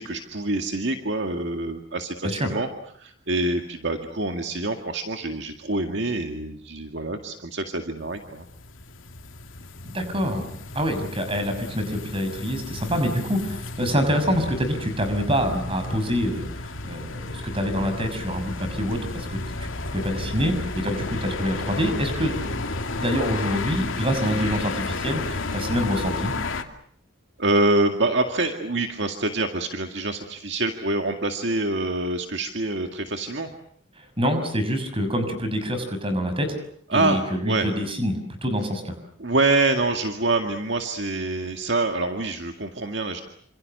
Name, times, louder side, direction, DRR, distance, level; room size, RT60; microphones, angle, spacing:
voice 1, 0.0-2.7 2.9-8.5 27.4-33.5 36.9-37.7 39.2-43.2, right 2 dB, 60° right, 4 dB, 2.1 m, -26 dB
sound 1, 8.0-26.6, left 2 dB, 80° left, 2.6 m, -32 dB
voice 2, 9.8-16.5 16.8-22.7 23.0-26.3 34.0-36.6 36.9-38.9, equal, 25° right, 8 dB, 6.1 m, -26 dB
28.5 x 27.0 x 6.7 m, 0.64 s
head